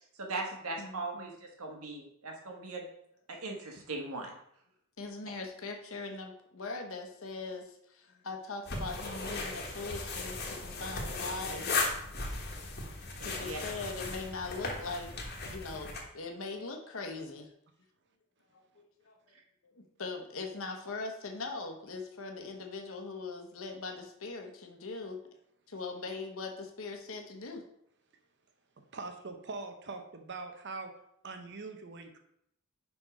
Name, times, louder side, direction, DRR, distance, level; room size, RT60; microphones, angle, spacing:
voice 1, 0.2-1.3 1.6-2.8 3.3-4.3 13.2-13.6, right 2 dB, 80° right, 1 dB, 1.5 m, -39 dB
voice 2, 0.8-1.3 5.0-11.9 13.2-15.1 15.5-17.5 18.5-19.2 19.6-25.2 25.7-27.6, left 3 dB, 65° left, 3 dB, 1.0 m, -41 dB
sound 1, 8.7-16.0, left 3 dB, 45° left, 1.3 m, -37 dB
voice 3, 28.9-30.9 31.2-32.2, right 3 dB, 50° right, 5 dB, 0.8 m, -42 dB
5.4 x 4.8 x 5.0 m, 0.73 s
head